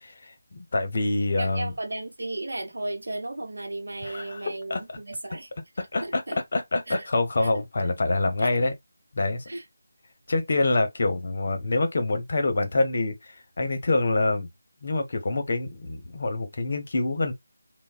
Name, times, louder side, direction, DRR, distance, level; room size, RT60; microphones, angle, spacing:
voice 1, 0.0-1.7 4.0-5.0 5.8-8.7 9.1-9.4 10.3-14.5 14.8-17.3, left 2 dB, 50° left, 0.7 m, -26 dB
voice 2, 1.4-5.5 6.0-6.4 6.9-7.1 7.4-7.6 8.4-8.7 9.5-9.6, right 2 dB, 70° right, 0.8 m, -35 dB
3.3 x 2.0 x 2.3 m
figure-of-eight pair, 160°, 0 cm